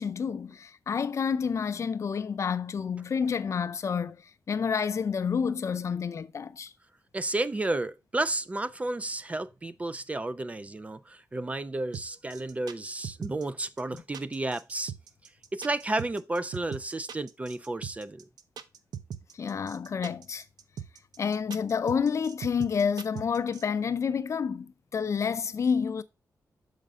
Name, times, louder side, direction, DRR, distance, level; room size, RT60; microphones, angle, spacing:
voice 1, 0.0-6.7 13.9-14.0 19.3-20.5 21.2-26.0, left 6 dB, 45° left, 0.5 m, -29 dB
voice 2, 7.1-14.9 15.5-18.2, right 2 dB, 20° right, 0.3 m, -32 dB
sound 1, 11.9-23.6, right 8 dB, 85° right, 0.6 m, -40 dB
6.6 x 5.0 x 3.5 m
wide cardioid pair, 145°, 7 cm